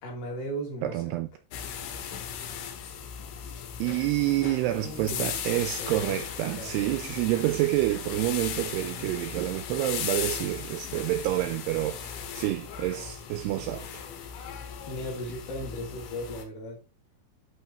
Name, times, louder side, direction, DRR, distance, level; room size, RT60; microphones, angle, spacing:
voice 1, 0.0-0.9 4.7-5.4 5.8-6.2 6.6-6.8 14.9-16.8, equal, 55° left, 4.4 m, -37 dB
voice 2, 0.8-1.3 3.8-14.1, right 15 dB, 90° right, 2.3 m, -28 dB
sound 1, 1.5-16.4, left 8 dB, 85° left, 3.7 m, -37 dB
11.5 x 4.0 x 4.4 m
omnidirectional pair, 5.3 m